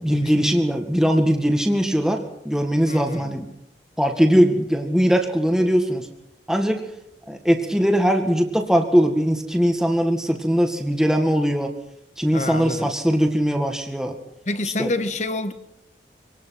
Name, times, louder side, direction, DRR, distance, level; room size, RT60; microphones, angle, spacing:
voice 1, 0.0-3.5 4.0-6.1 6.5-6.9 7.3-11.7 12.2-14.2 14.8-14.9, equal, 5° right, 1.9 m, -20 dB
voice 2, 2.8-3.3 12.3-12.9 14.4-15.5, left 2 dB, 40° left, 1.5 m, -28 dB
25.5 x 18.5 x 6.0 m
head